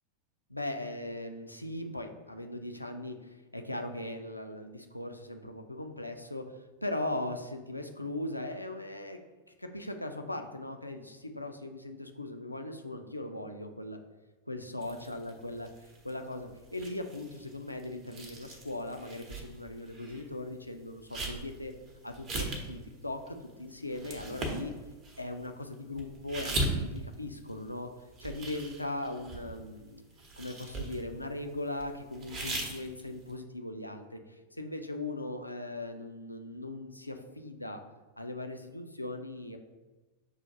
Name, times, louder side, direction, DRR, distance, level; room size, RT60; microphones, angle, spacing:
voice 1, 0.5-9.2 9.6-14.0 14.5-15.7 16.0-21.7 22.0-24.7 25.2-27.9 28.2-30.0 30.4-37.8 38.2-39.6, left 2 dB, 85° left, 6 dB, 0.3 m, -39 dB
sound 1, 14.8-20.2 20.5-27.8 28.1-29.8 30.2-31.3 31.8-33.3, right 2 dB, 35° right, 0.7 m, -39 dB
6.2 x 2.4 x 2.8 m, 1.2 s
figure-of-eight pair, 90°, 0 cm